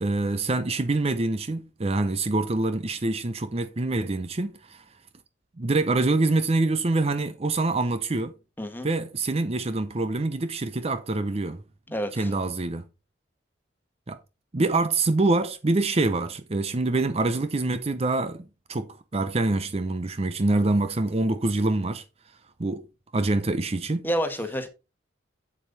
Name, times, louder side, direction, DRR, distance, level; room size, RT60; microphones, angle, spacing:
voice 1, 0.0-4.8 5.6-8.4 8.8-11.6 12.1-12.9 14.1-14.2 14.5-22.0 22.6-22.9 23.1-24.1, right 2 dB, 35° right, 0.6 m, -25 dB
voice 2, 11.9-12.3 24.0-24.7, equal, 10° left, 1.6 m, -29 dB
8.4 x 7.6 x 4.1 m
head